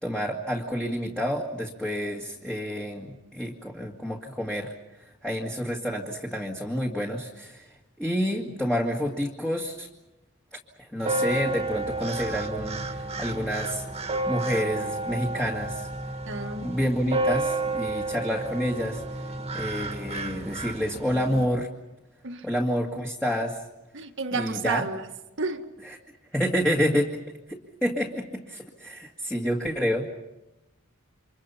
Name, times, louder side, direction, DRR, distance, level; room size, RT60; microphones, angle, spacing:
voice 1, 0.0-9.9 10.8-13.8 14.3-15.9 16.6-19.0 19.5-21.7 22.4-23.6 24.3-24.8 25.8-26.0 26.3-27.2 27.5-30.1, equal, 5° left, 2.0 m, -29 dB
sound 1, 11.0-21.5, right 2 dB, 30° right, 1.9 m, -31 dB
voice 2, 16.3-16.8 22.2-22.5 23.9-25.0 25.4-25.6, right 4 dB, 60° right, 1.8 m, -31 dB
29.0 x 25.5 x 5.7 m
head